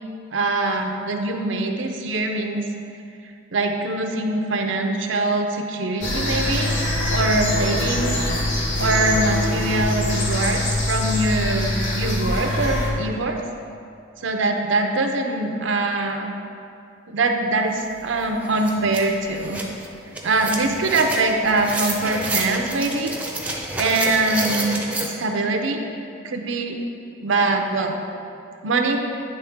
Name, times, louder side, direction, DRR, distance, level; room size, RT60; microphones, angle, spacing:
voice 1, 0.3-2.6 3.5-6.7 7.1-8.1 8.8-13.4 14.2-16.3 17.1-19.6 20.2-23.2 23.8-25.8 26.2-26.8 27.2-28.0 28.6-29.0, right 2 dB, 75° right, 4 dB, 0.6 m, -23 dB
sound 1, 6.0-12.9, left 1 dB, 70° left, 1.3 m, -23 dB
sound 2, 17.8-17.9 18.2-25.1, right 2 dB, 5° right, 0.5 m, -30 dB
9.8 x 3.3 x 3.5 m, 2.4 s
head